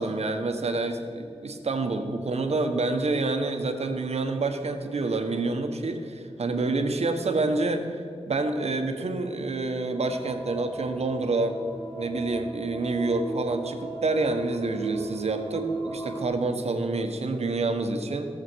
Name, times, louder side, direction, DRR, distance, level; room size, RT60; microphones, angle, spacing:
voice 1, 0.0-7.9 8.3-11.6 12.0-18.3, right 3 dB, 70° right, 5 dB, 1.3 m, -28 dB
sound 1, 9.9-16.2, right 3 dB, 40° left, 2.3 m, -36 dB
16.5 x 7.3 x 6.3 m, 2.4 s
wide cardioid pair, 105°, 11 cm